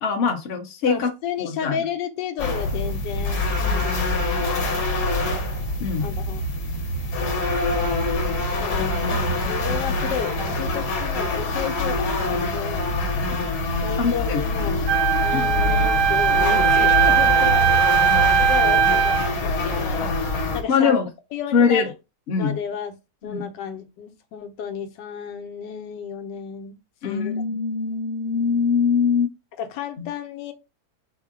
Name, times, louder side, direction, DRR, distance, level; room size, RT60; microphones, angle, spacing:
voice 1, 0.0-1.1 1.4-1.7 5.8-6.1 14.0-14.4 15.3-15.4 18.1-18.2 20.0-20.1 20.7-21.1 21.5-21.9 22.3-22.6 23.2-23.5 27.0-29.3 30.0-30.1, left 6 dB, 50° left, 0.8 m, -22 dB
voice 2, 0.8-4.3 6.0-6.4 8.6-9.0 9.4-13.0 13.8-18.1 18.4-20.1 20.5-20.9 21.3-21.9 22.4-22.9 23.2-26.8 27.0-27.3 29.6-30.5, left 8 dB, 90° left, 1.3 m, -32 dB
sound 1, 2.4-20.6, left 2 dB, 70° left, 1.3 m, -25 dB
Wind instrument woodwind instrument, 14.9-19.3, right 8 dB, 65° right, 0.8 m, -19 dB
4.5 x 2.1 x 3.6 m
omnidirectional pair, 1.8 m